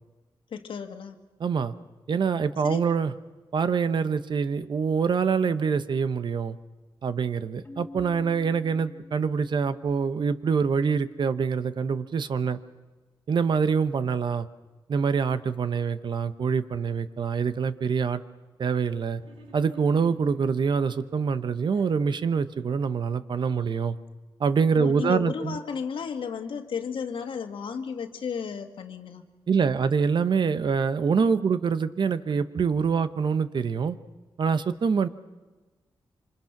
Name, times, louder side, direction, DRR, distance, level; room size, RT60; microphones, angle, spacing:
voice 1, 0.5-1.2 2.6-2.8 24.8-29.2, left 6 dB, 75° left, 7 dB, 1.9 m, -33 dB
voice 2, 1.4-1.7 2.1-3.1 3.5-6.6 7.0-12.6 13.3-14.5 14.9-18.2 18.6-19.2 19.5-24.0 24.4-25.6 29.5-34.0 34.4-35.1, right 6 dB, 60° right, 12 dB, 1.0 m, -25 dB
Keyboard (musical), 7.6-10.3, left 2 dB, 25° left, 2.0 m, -47 dB
sound 1, 19.2-20.5 21.1-22.0, right 4 dB, 80° right, 5.2 m, -52 dB
26.5 x 25.5 x 6.0 m, 1.2 s
wide cardioid pair, 100°, 9 cm